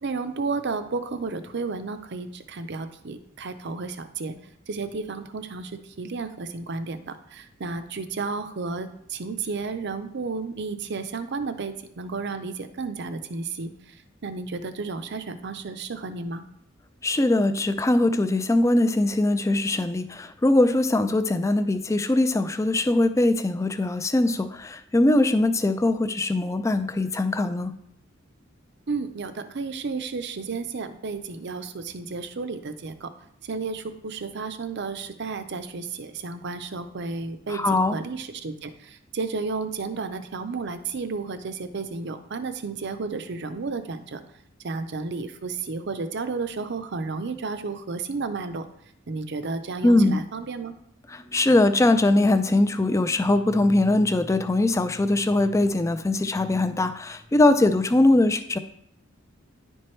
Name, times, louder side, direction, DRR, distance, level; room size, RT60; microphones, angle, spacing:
voice 1, 0.0-4.3 4.7-14.0 14.2-16.4 28.9-33.1 33.4-44.2 44.6-48.6 49.1-50.7, right 4 dB, 55° right, 10 dB, 0.6 m, -32 dB
voice 2, 17.0-27.7 37.5-38.0 49.8-50.2 51.1-58.6, left 2 dB, 15° left, 11 dB, 0.3 m, -21 dB
10.5 x 4.5 x 3.2 m, 0.73 s
head